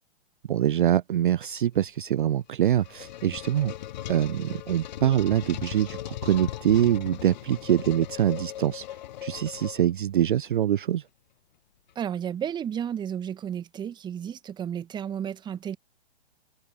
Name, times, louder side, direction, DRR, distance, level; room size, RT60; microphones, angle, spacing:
voice 1, 0.5-3.7 4.1-8.9 9.2-11.0, right 11 dB, 50° right, 0.4 m, -24 dB
sound 1, 2.4-10.2, left 12 dB, 45° left, 0.8 m, -38 dB
voice 2, 12.0-15.8, right 9 dB, 15° right, 1.8 m, -32 dB
figure-of-eight pair, 120°, 32 cm